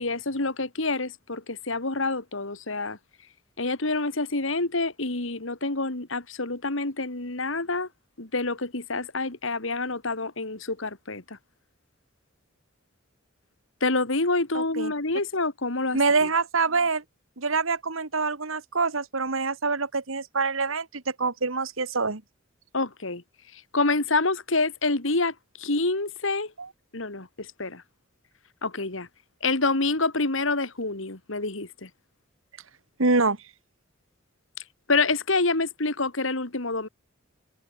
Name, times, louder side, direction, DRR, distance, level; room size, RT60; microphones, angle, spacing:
voice 1, 0.0-3.0 3.6-7.9 8.2-11.4 13.8-16.3 22.7-23.2 23.5-26.5 26.9-27.8 28.6-29.1 29.4-31.9 34.9-36.9, left 3 dB, 75° left, 2.5 m, -27 dB
voice 2, 14.5-14.9 15.9-17.0 17.4-22.2 26.6-26.7 33.0-33.4, right 4 dB, 85° right, 1.9 m, -25 dB
head